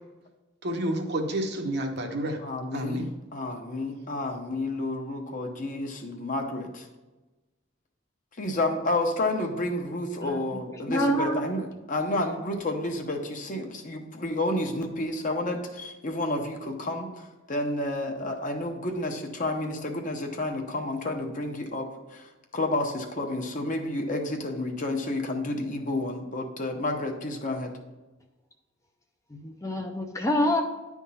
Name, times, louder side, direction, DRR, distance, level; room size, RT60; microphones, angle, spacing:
voice 1, 0.6-2.4 2.7-3.1, right 1 dB, 60° right, 3 dB, 1.0 m, -29 dB
voice 2, 2.4-6.8 8.4-27.7, left 2 dB, 45° left, 3 dB, 1.0 m, -30 dB
voice 3, 10.9-11.4 29.3-30.6, equal, 15° left, 3 dB, 0.6 m, -26 dB
10.5 x 3.6 x 5.6 m, 1.1 s
head